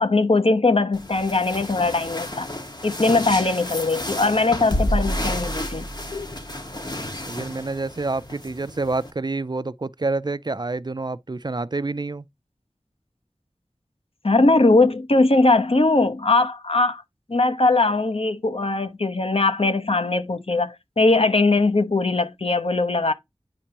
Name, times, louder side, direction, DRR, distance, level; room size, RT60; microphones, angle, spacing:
voice 1, 0.0-2.5 2.8-5.8 6.1-6.3 14.2-17.0 17.3-23.1, left 3 dB, 70° left, 1.0 m, -20 dB
Fast-dressing-and-undressing-jacket, 0.9-9.1, equal, 45° left, 1.7 m, -30 dB
voice 2, 7.3-12.3, right 3 dB, 45° right, 0.4 m, -28 dB
10.0 x 4.4 x 2.9 m
wide cardioid pair, 40°, 10 cm